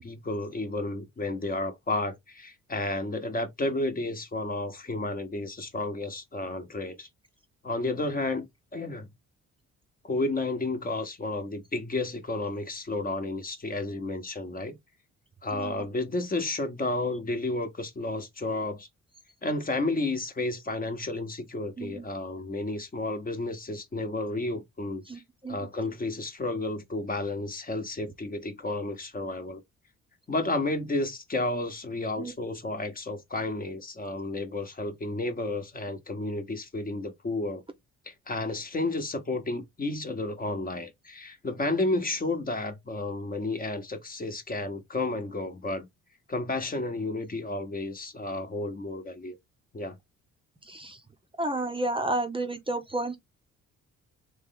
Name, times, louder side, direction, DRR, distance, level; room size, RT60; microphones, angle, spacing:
voice 1, 0.0-7.1 7.6-8.5 8.7-9.1 10.0-14.8 15.4-18.9 19.4-25.0 25.5-29.6 30.3-37.6 38.1-45.9 46.3-49.3 49.7-50.0, left 2 dB, 30° left, 1.0 m, -32 dB
voice 2, 25.1-25.6 32.2-32.3 50.7-51.0 51.4-53.2, right 2 dB, 15° right, 0.7 m, -31 dB
3.3 x 3.2 x 3.8 m
cardioid pair, 90°, 30 cm